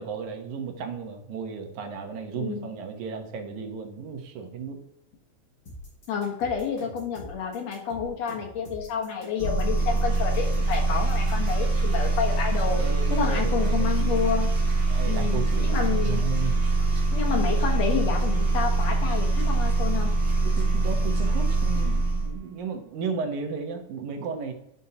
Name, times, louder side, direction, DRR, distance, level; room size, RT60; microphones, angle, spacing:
voice 1, 0.0-4.8 12.7-14.2 14.9-16.6 20.6-24.5, right 5 dB, 85° right, 4 dB, 2.5 m, -34 dB
voice 2, 2.3-2.7 6.1-12.8 13.1-14.5 15.1-16.2 17.1-20.1, left 6 dB, 65° left, 1 dB, 2.3 m, -29 dB
sound 1, 5.7-11.6, equal, 45° left, 3.8 m, -44 dB
sound 2, 9.4-22.4, right 2 dB, 45° right, 2.4 m, -24 dB
10.0 x 5.4 x 2.8 m, 0.76 s
omnidirectional pair, 3.3 m